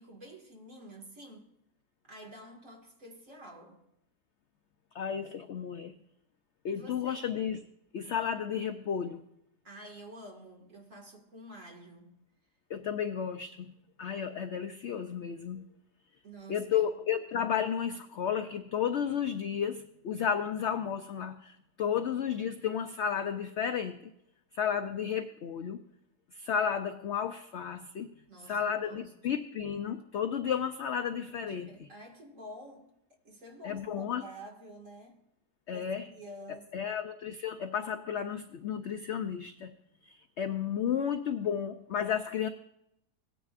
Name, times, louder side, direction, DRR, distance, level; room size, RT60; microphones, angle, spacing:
voice 1, 0.0-1.5 2.1-3.8 6.7-7.3 9.6-12.2 16.2-16.9 28.3-29.1 31.4-32.9 33.2-35.2 35.7-36.9, right 1 dB, 50° right, -1 dB, 2.4 m, -49 dB
voice 2, 4.9-5.9 6.6-7.6 7.9-9.2 12.7-13.7 14.0-15.6 16.5-24.0 24.5-25.8 26.3-28.1 28.5-31.9 33.6-34.2 35.7-36.1 36.7-39.7 40.1-42.5, left 8 dB, 75° left, 8 dB, 0.6 m, -33 dB
17.5 x 10.0 x 2.5 m, 0.80 s
omnidirectional pair, 1.7 m